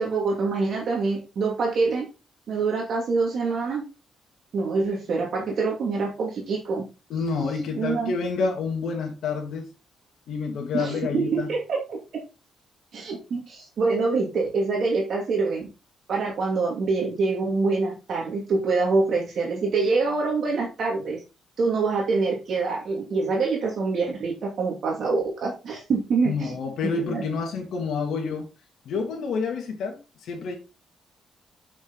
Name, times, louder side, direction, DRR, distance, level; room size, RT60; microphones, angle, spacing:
voice 1, 0.0-2.1 2.5-3.8 4.5-6.8 7.8-8.1 10.7-12.0 12.9-15.7 16.1-21.2 21.6-26.5 26.8-27.2, right 4 dB, 50° right, 2.6 m, -25 dB
voice 2, 7.1-9.7 10.3-11.5 26.2-28.5 28.8-30.6, left 4 dB, 70° left, 2.8 m, -28 dB
8.6 x 6.0 x 4.1 m
cardioid pair, 170°, 0 cm